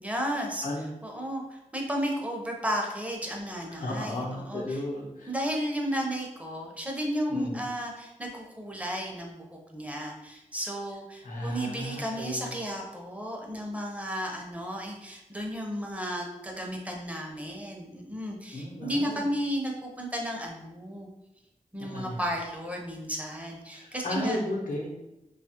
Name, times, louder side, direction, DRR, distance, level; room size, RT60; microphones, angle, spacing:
voice 1, 0.0-4.8 5.3-21.1 21.7-24.4, equal, 10° right, 0 dB, 0.6 m, -33 dB
voice 2, 3.8-5.3 7.3-7.6 11.2-12.5 18.5-19.2 21.8-22.2 23.8-24.9, left 1 dB, 85° left, -3 dB, 0.7 m, -34 dB
2.8 x 2.3 x 2.9 m, 0.92 s
cardioid pair, 55°, 13 cm